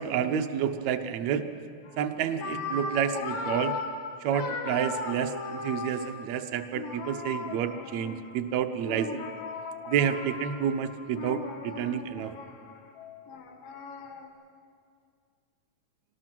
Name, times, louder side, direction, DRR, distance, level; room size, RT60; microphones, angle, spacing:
voice 1, 0.0-1.4 2.0-3.8 4.2-9.3 9.9-12.3, right 8 dB, 70° right, 7 dB, 2.0 m, -29 dB
sound 1, 1.9-2.0 2.3-6.3 6.7-8.4 8.8-14.3, left 4 dB, 90° left, 3.2 m, -37 dB
26.0 x 19.0 x 6.1 m, 2.2 s
omnidirectional pair, 3.8 m